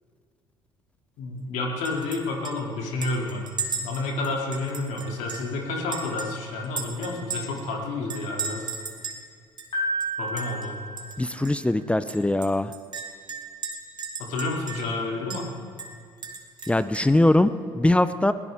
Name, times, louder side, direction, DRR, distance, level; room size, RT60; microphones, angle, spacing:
voice 1, 1.2-3.5 3.8-8.8 10.2-10.8 14.3-15.5, left 2 dB, 65° left, 0 dB, 2.8 m, -30 dB
Chink clink, 1.8-2.2 2.4-2.5 3.0-5.5 5.9-7.7 8.1-9.2 9.6-9.7 10.0-10.7 11.0-11.2 11.4-11.5 12.1-15.0 15.3-15.4 15.8-17.2, right 5 dB, 35° right, 2.3 m, -35 dB
Piano, 9.7-11.8, equal, 45° left, 4.6 m, -32 dB
voice 2, 11.2-12.7 16.7-18.3, left 1 dB, 10° left, 13 dB, 0.5 m, -21 dB
21.0 x 16.0 x 3.7 m, 2.1 s
hypercardioid pair, 60°, 13 cm